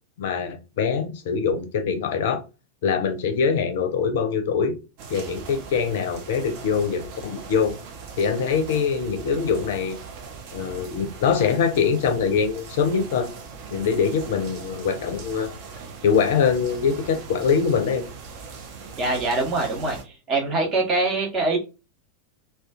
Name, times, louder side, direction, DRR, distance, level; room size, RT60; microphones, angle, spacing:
voice 1, 0.2-2.4 2.8-4.8 5.1-7.8 8.2-10.0 10.5-13.3 13.7-15.5 16.0-18.0, left 6 dB, 55° left, 0.5 m, -23 dB
sound 1, 5.0-20.0, right 5 dB, 45° right, 0.5 m, -40 dB
voice 2, 19.0-21.6, right 3 dB, 30° right, 0.9 m, -24 dB
2.4 x 2.2 x 2.3 m
figure-of-eight pair, 90°, 0 cm